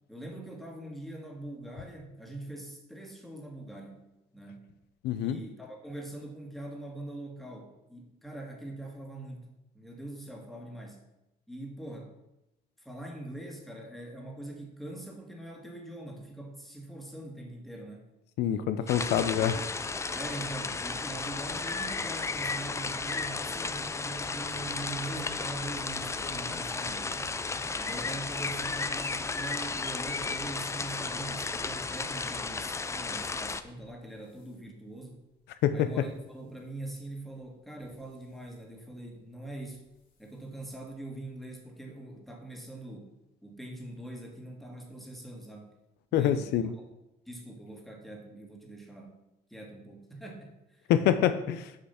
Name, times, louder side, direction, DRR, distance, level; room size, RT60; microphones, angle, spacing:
voice 1, 0.1-4.1 4.3-4.7 5.2-9.5 9.7-11.0 11.5-12.1 12.8-18.1 18.8-19.7 20.1-27.2 27.8-35.2 35.7-39.8 40.2-43.1 43.4-45.7 46.1-46.9 47.3-49.2 49.5-50.9, right 1 dB, ahead, 1 dB, 1.8 m, -43 dB
voice 2, 5.0-5.4 18.4-19.6 35.6-35.9 46.1-46.7 50.9-51.7, left 10 dB, 80° left, 11 dB, 0.5 m, -26 dB
sound 1, 18.9-33.6, left 4 dB, 15° left, 0.4 m, -34 dB
sound 2, 24.4-27.8 28.2-32.3 32.7-33.1 33.6-34.0 34.2-34.5 35.2-35.3 35.6-35.7 36.8-36.9 37.7-38.5 39.7-39.9 40.2-40.3 40.6-40.7, right 2 dB, 55° left, 2.3 m, -49 dB
6.7 x 5.5 x 5.8 m, 0.91 s
cardioid pair, 110°, 17 cm